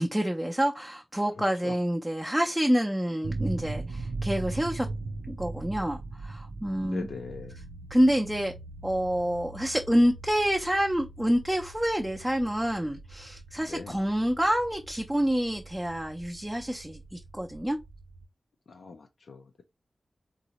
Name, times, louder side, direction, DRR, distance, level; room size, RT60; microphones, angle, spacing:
voice 1, 0.0-4.9 5.3-7.1 7.9-8.5 8.8-17.8, equal, 10° right, 0.4 m, -27 dB
voice 2, 1.4-1.8 6.8-7.6 13.6-14.0 18.7-19.6, left 4 dB, 85° left, 0.4 m, -41 dB
sound 1, 3.2-18.3, right 3 dB, 90° right, 0.3 m, -40 dB
3.7 x 2.0 x 2.8 m
wide cardioid pair, 75°, 0 cm